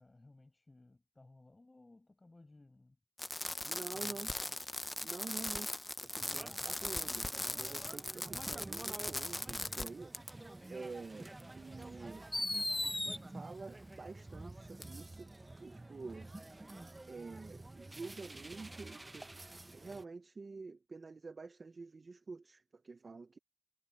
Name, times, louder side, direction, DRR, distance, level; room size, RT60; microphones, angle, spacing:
voice 1, 0.0-3.0 3.9-4.6, left 2 dB, 50° left, 7.2 m, -61 dB
Fireworks, 3.2-9.9 10.1-10.3 11.4-11.5 12.3-13.2 14.8-14.9, left 1 dB, 30° left, 0.6 m, -38 dB
voice 2, 3.6-4.3 5.0-7.3 7.6-10.1 10.7-12.3 12.8-16.3 17.1-19.3 19.7-23.4, right 4 dB, 90° right, 0.8 m, -48 dB
sound 1, 6.2-20.0, right 2 dB, 40° right, 0.7 m, -50 dB
wide cardioid pair, 50°, 0 cm